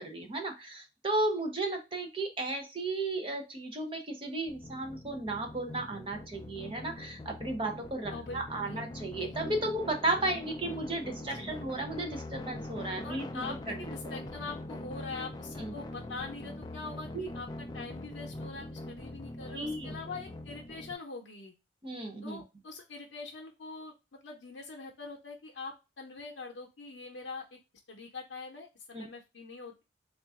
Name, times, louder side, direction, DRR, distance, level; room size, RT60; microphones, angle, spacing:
voice 1, 0.0-13.4 13.7-13.8 15.6-15.7 17.1-17.3 19.5-19.9 21.8-22.4 28.9-29.1, right 2 dB, 30° right, 4 dB, 0.7 m, -34 dB
sound 1, 4.5-20.9, left 1 dB, 20° left, 0.4 m, -43 dB
voice 2, 8.1-8.8 9.2-9.6 11.2-11.6 13.0-21.5 22.2-27.6 27.9-29.8, left 4 dB, 90° left, 0 dB, 0.6 m, -44 dB
3.8 x 2.4 x 3.5 m, 0.26 s
head